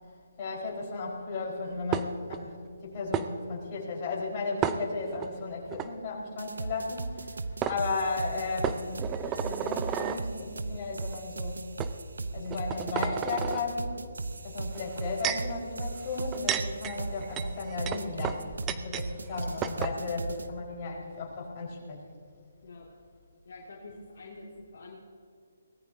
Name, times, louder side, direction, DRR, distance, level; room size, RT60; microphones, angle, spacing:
voice 1, 0.4-11.7 12.3-14.0 14.4-22.0, left 3 dB, 35° left, -4 dB, 4.4 m, -35 dB
sound 1, 1.9-2.4 3.1-3.3 4.6-5.3 5.7-5.9 7.2-7.3 7.6-7.8 8.6-10.2 11.0-11.2 11.8-11.9 12.5-13.6 14.7-15.5 16.2-19.1 19.3-19.4 19.6-20.0, right 9 dB, 20° right, 0.5 m, -32 dB
sound 2, 6.4-20.5, right 3 dB, 80° right, 0.8 m, -37 dB
voice 2, 23.5-25.0, left 2 dB, 60° left, -3 dB, 2.2 m, -46 dB
23.0 x 18.0 x 2.7 m, 2.4 s
figure-of-eight pair, 145°, 0 cm